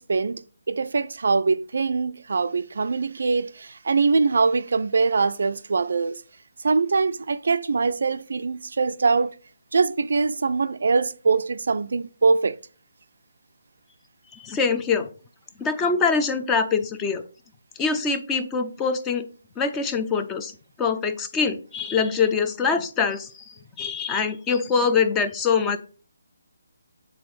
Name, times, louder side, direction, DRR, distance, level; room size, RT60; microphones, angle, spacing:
voice 1, 0.0-6.2 6.6-9.3 9.7-12.6, right 4 dB, 60° right, 0.3 m, -23 dB
voice 2, 14.3-15.1 15.6-17.2 17.8-19.2 19.6-20.5 20.8-25.8, left 5 dB, 15° left, 0.6 m, -24 dB
8.5 x 3.8 x 3.2 m
figure-of-eight pair, 150°, 0 cm